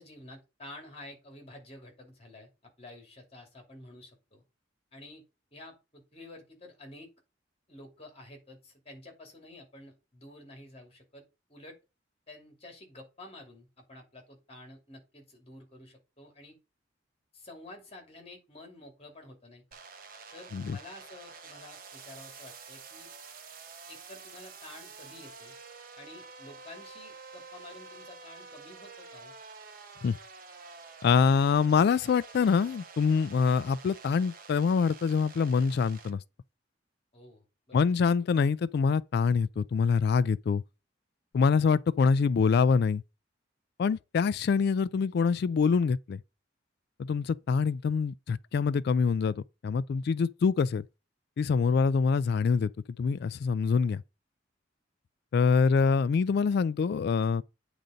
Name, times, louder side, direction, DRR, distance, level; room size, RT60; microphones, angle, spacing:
voice 1, 0.0-4.4 4.9-5.2 5.5-7.1 7.7-11.2 11.5-11.8 12.3-16.5 17.3-19.6 20.3-23.1 23.9-25.5 25.9-29.3 37.1-37.9, left 1 dB, 35° left, 2.6 m, -50 dB
sound 1, 19.7-36.1, right 4 dB, 50° right, 1.2 m, -49 dB
voice 2, 31.0-36.2 37.7-40.6 41.3-43.0 43.8-46.2 47.0-49.3 49.6-50.8 51.4-52.7 53.0-54.0 55.3-57.4, left 5 dB, 60° left, 0.3 m, -25 dB
9.0 x 4.0 x 5.1 m
head